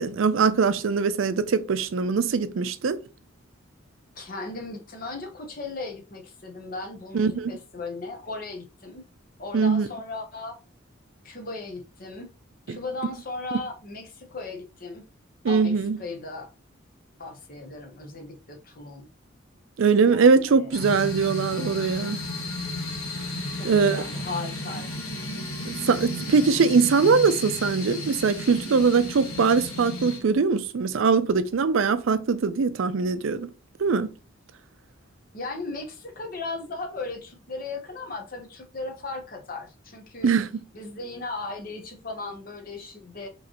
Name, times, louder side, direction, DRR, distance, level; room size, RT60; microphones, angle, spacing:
voice 1, 0.0-3.0 7.1-7.5 9.5-9.9 12.7-12.8 15.4-16.0 19.8-22.2 23.6-24.0 25.6-33.5 33.8-34.1 40.2-40.5, right 5 dB, 70° right, 0.4 m, -22 dB
voice 2, 4.2-9.0 9.4-10.6 11.2-12.3 12.7-15.0 15.5-16.5 17.2-19.1 20.0-20.7 21.6-22.0 23.6-25.0 35.3-40.3 40.7-43.3, left 3 dB, 40° left, 1.0 m, -37 dB
sound 1, 20.7-30.2, left 1 dB, 85° left, 1.7 m, -34 dB
4.9 x 3.2 x 2.9 m
head